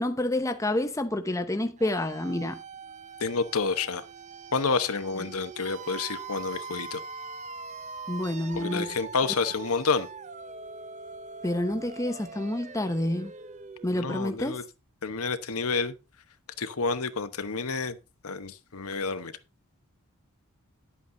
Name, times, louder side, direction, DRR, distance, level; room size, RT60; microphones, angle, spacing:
voice 1, 0.0-2.6 8.1-8.9 11.4-13.3 13.8-14.6, left 1 dB, 15° left, 0.8 m, -28 dB
sound 1, 1.8-14.6, right 4 dB, 30° right, 0.6 m, -42 dB
voice 2, 3.2-4.0 4.5-7.0 8.6-10.1 13.9-14.6 15.0-15.9 16.6-18.0 18.2-19.3, left 4 dB, 75° left, 1.0 m, -29 dB
11.0 x 8.4 x 3.8 m
head